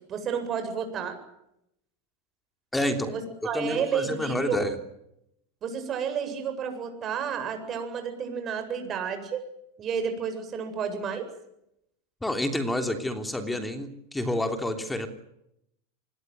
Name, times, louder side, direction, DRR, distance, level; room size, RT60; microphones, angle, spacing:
voice 1, 0.1-1.2 3.0-4.6 5.6-9.4 9.8-11.3, right 7 dB, 30° right, 7 dB, 7.8 m, -31 dB
voice 2, 2.7-3.1 3.5-4.8 12.2-15.1, left 1 dB, 5° left, 6 dB, 3.3 m, -29 dB
25.5 x 21.0 x 9.5 m, 0.80 s
supercardioid pair, 125°, 0 cm